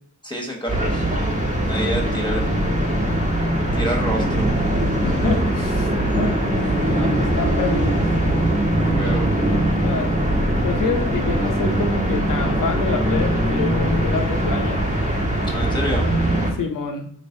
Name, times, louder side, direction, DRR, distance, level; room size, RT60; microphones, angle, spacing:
voice 1, 0.2-1.1 1.7-2.6 3.7-4.5 6.8-7.3 8.7-9.3 15.5-16.1, equal, 15° left, 0 dB, 1.2 m, -28 dB
sound 1, 0.7-16.5, right 1 dB, 25° right, 1.2 m, -21 dB
sound 2, 2.4-14.5, equal, 5° right, 0.3 m, -29 dB
voice 2, 5.0-6.4 7.0-8.1 9.8-10.1 10.6-14.8 16.5-17.1, left 4 dB, 80° left, 3 dB, 0.7 m, -27 dB
4.0 x 3.2 x 2.7 m, 0.63 s
wide cardioid pair, 90°, 32 cm